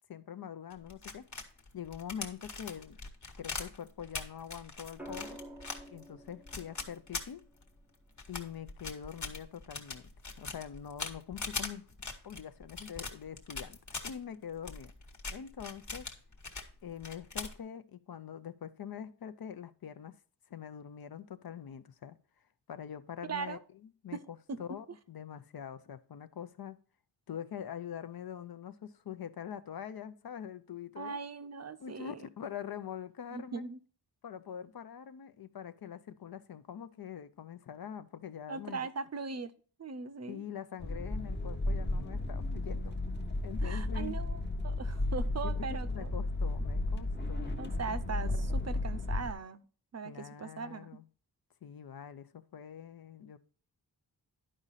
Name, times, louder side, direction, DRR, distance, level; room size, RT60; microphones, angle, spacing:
voice 1, 0.1-1.3 1.7-3.0 3.4-5.4 5.9-7.4 8.3-10.1 10.4-11.8 12.2-13.8 14.0-14.9 15.3-16.1 16.8-20.1 20.5-22.2 22.7-23.6 24.0-26.8 27.3-31.2 31.8-33.6 34.2-38.9 40.3-42.9 43.4-44.2 45.7-47.8 48.6-48.7 50.0-51.1 51.6-53.4, left 8 dB, 60° left, 0.7 m, -44 dB
sound 1, 0.7-7.8 8.2-14.1 14.6-16.7 17.0-17.6, left 4 dB, 45° left, 1.3 m, -41 dB
sound 2, 5.0-9.1 10.8-11.2, right 1 dB, 5° right, 0.7 m, -51 dB
voice 2, 31.0-32.2 33.3-33.8 38.5-39.5 39.8-40.5 43.6-46.1 47.6-49.6 49.9-50.9, right 5 dB, 40° right, 0.6 m, -40 dB
sound 3, 40.8-49.3, left 2 dB, 25° left, 0.9 m, -34 dB
11.0 x 5.0 x 4.1 m
wide cardioid pair, 155°, 40 cm